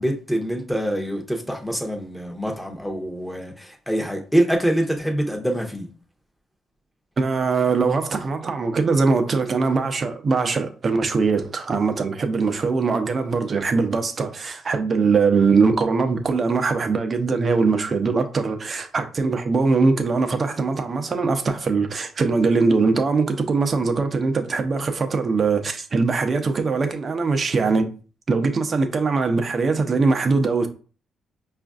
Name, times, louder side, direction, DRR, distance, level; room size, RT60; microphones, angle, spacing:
voice 1, 0.0-5.9, right 1 dB, 5° left, 0.8 m, -25 dB
voice 2, 7.2-27.9 28.3-30.7, right 4 dB, 40° right, 0.6 m, -21 dB
4.9 x 2.5 x 2.4 m
cardioid pair, 90°, 0 cm